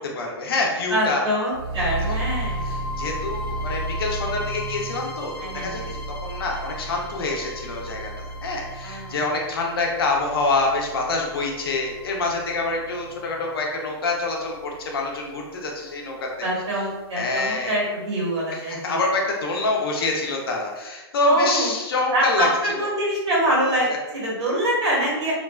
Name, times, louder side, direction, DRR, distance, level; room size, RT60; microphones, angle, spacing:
voice 1, 0.0-1.2 2.0-2.2 2.7-16.3 17.2-17.7 18.5-22.7, left 2 dB, 60° left, 0 dB, 0.6 m, -26 dB
voice 2, 0.9-2.7 5.4-5.9 8.8-9.2 16.4-19.0 21.2-21.7 22.1-25.3, right 1 dB, 85° right, -5 dB, 1.3 m, -25 dB
sound 1, 1.5-15.5, right 1 dB, 15° left, 0.4 m, -33 dB
2.5 x 2.2 x 2.3 m, 1.1 s
hypercardioid pair, 170°, 14 cm